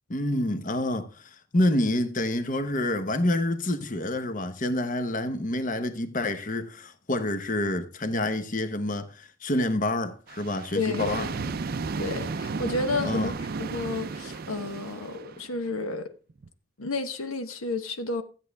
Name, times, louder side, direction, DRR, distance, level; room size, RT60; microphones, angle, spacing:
voice 1, 0.1-11.3 13.0-13.3, left 1 dB, 40° left, 0.9 m, -28 dB
sound 1, 10.3-15.7 16.3-16.5, right 4 dB, 45° right, 0.4 m, -34 dB
voice 2, 10.7-11.5 12.0-16.1 16.8-18.2, left 3 dB, 85° left, 1.1 m, -31 dB
13.5 x 8.2 x 3.4 m
head